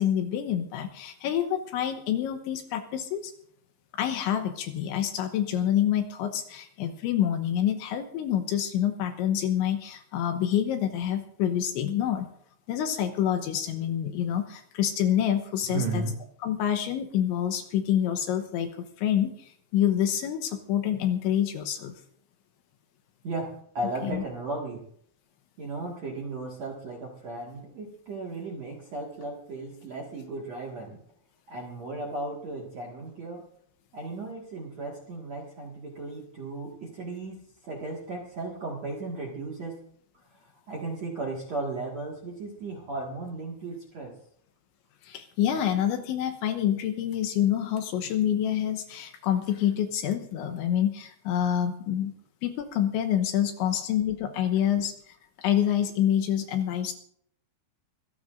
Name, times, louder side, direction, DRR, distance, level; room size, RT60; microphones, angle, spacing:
voice 1, 0.0-3.3 3.9-12.3 12.7-16.0 16.4-21.9 24.0-24.2 45.0-52.1 52.4-56.9, left 10 dB, 75° left, 7 dB, 3.1 m, -27 dB
voice 2, 15.7-16.2 23.2-24.8 25.6-31.0 31.5-33.5 33.9-39.8 40.4-44.1, right 2 dB, 55° right, -1 dB, 2.0 m, -35 dB
24.5 x 15.0 x 2.6 m, 0.66 s
omnidirectional pair, 5.9 m